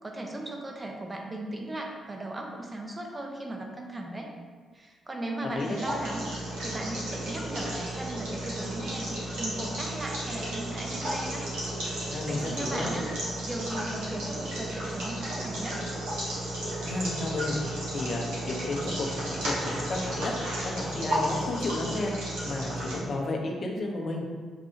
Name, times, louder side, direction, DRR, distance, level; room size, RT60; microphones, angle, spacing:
voice 1, 0.0-4.3 4.7-11.4 12.3-13.1 13.5-15.8, right 1 dB, 25° right, 1 dB, 0.9 m, -37 dB
sound 1, 5.5-23.0, right 1 dB, 70° right, 1.2 m, -33 dB
voice 2, 12.1-12.9 16.8-17.6 17.9-20.3 20.6-22.1 22.4-24.2, left 2 dB, 50° left, -1 dB, 0.9 m, -32 dB
6.6 x 2.6 x 2.8 m, 1.5 s
hypercardioid pair, 40°, 0 cm